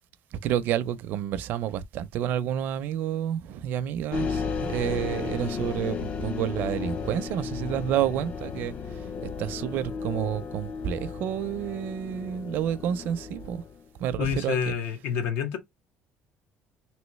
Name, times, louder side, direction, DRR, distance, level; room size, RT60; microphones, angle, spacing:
voice 1, 0.3-13.6 14.0-14.7, right 10 dB, 60° right, 0.5 m, -30 dB
sound 1, 4.1-13.8, left 5 dB, 35° left, 0.4 m, -34 dB
voice 2, 14.2-15.6, left 7 dB, 75° left, 0.9 m, -28 dB
3.1 x 3.0 x 3.0 m
cardioid pair, 145°, 4 cm